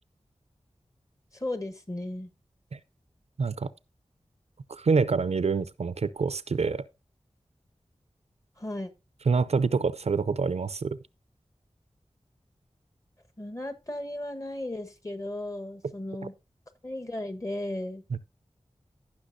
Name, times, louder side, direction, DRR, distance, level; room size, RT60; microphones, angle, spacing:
voice 1, 1.3-2.3 8.6-8.9 13.4-16.3 16.8-18.0, left 1 dB, 30° left, 1.4 m, -35 dB
voice 2, 3.4-3.7 4.7-6.8 9.3-11.0 18.1-18.2, right 4 dB, 70° right, 0.5 m, -26 dB
16.5 x 5.9 x 2.6 m
wide cardioid pair, 65°, 11 cm